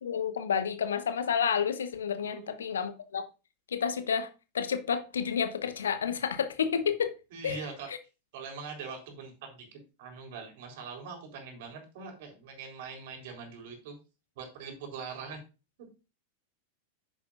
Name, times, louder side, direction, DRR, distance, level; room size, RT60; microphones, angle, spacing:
voice 1, 0.0-3.2 3.7-4.3 4.5-7.1 7.4-7.6 7.9-8.0, left 7 dB, 65° left, 1.1 m, -30 dB
voice 2, 2.2-2.6 7.3-7.9 8.3-14.0 14.4-15.4, right 5 dB, 50° right, 4.0 m, -43 dB
10.0 x 9.7 x 2.6 m
figure-of-eight pair, 90°, 0 cm